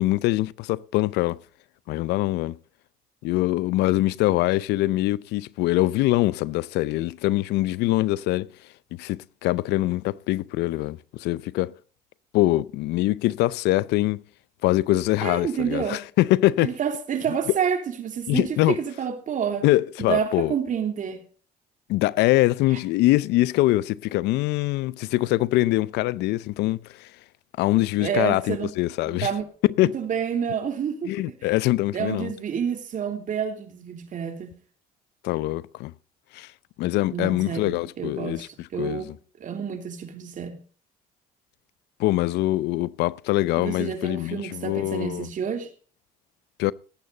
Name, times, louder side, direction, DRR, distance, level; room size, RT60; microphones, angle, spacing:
voice 1, 0.0-1.4 1.9-2.6 3.2-8.5 8.9-11.7 12.3-14.2 14.6-16.8 18.3-18.8 19.6-20.5 21.9-27.1 27.6-29.3 29.8-30.0 31.1-32.3 35.2-35.9 36.3-36.5 36.8-39.1 42.0-45.3 46.6-46.7, left 17 dB, 85° left, 0.6 m, -23 dB
voice 2, 15.2-16.0 16.6-19.6 20.0-21.2 28.0-28.7 29.0-29.4 29.9-31.1 31.4-31.5 31.9-34.5 37.1-39.1 39.4-40.6 43.6-45.7, right 7 dB, 50° right, 3.0 m, -29 dB
18.5 x 8.8 x 3.9 m
cardioid pair, 110°, 17 cm